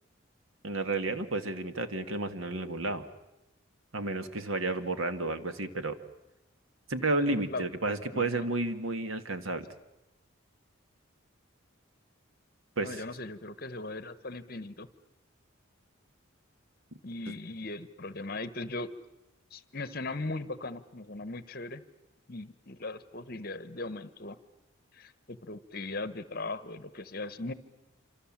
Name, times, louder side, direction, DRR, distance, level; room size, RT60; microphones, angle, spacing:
voice 1, 0.6-3.1 3.9-6.0 6.9-9.7 12.8-13.0 17.3-17.4, right 2 dB, 85° right, 10 dB, 1.8 m, -31 dB
voice 2, 7.2-7.6 8.1-8.4 12.8-14.9 17.0-18.9 19.5-21.8 22.3-24.4 24.9-27.5, left 2 dB, 45° left, 14 dB, 1.2 m, -39 dB
27.0 x 26.5 x 7.4 m, 0.94 s
head